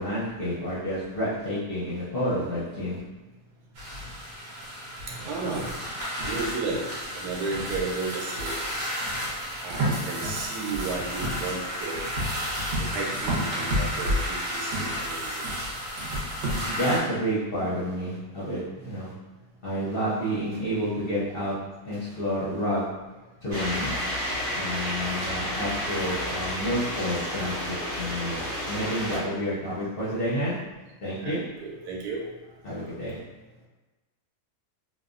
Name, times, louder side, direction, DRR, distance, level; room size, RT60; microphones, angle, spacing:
voice 1, 0.0-3.0 16.7-19.1 19.6-21.5 21.8-22.8 23.4-24.0 24.6-30.5 31.0-31.4 32.6-33.2, equal, 55° left, -10 dB, 0.6 m, -29 dB
sound 1, 3.8-17.0, equal, 65° right, 1.0 m, -31 dB
voice 2, 5.1-5.7 6.2-8.6 9.6-12.0 12.8-14.7 15.0-15.5 31.2-32.2, right 3 dB, 85° right, -2 dB, 1.2 m, -33 dB
sound 2, 23.5-29.2, equal, 20° right, 0.8 m, -31 dB
3.0 x 2.0 x 2.4 m, 1.2 s
omnidirectional pair, 1.6 m